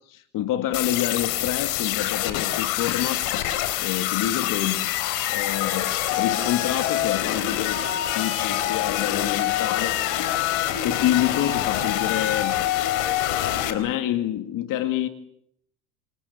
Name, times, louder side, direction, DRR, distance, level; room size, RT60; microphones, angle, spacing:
voice 1, 0.1-3.5 3.8-4.9 5.3-7.8 8.1-10.3 10.8-12.5 13.4-15.1, left 12 dB, 45° left, 2.3 m, -27 dB
sound 1, 0.7-13.7, left 13 dB, 85° left, 3.9 m, -25 dB
27.5 x 27.5 x 7.1 m
cardioid pair, 150°, 43 cm